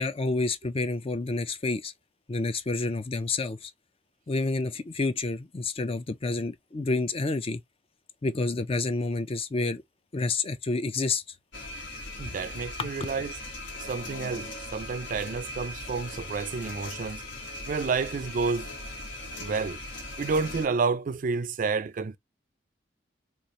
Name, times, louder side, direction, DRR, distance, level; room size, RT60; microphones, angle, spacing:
voice 1, 0.0-1.9 2.3-3.7 4.3-7.6 8.2-9.8 10.1-11.2 12.8-12.9, left 3 dB, 30° left, 0.4 m, -29 dB
sound 1, 11.5-20.7, left 1 dB, 85° left, 1.5 m, -39 dB
voice 2, 12.2-13.3 13.9-17.2 17.7-18.7 19.4-19.8 20.2-22.2, right 4 dB, 45° right, 0.4 m, -30 dB
3.1 x 2.4 x 4.0 m
head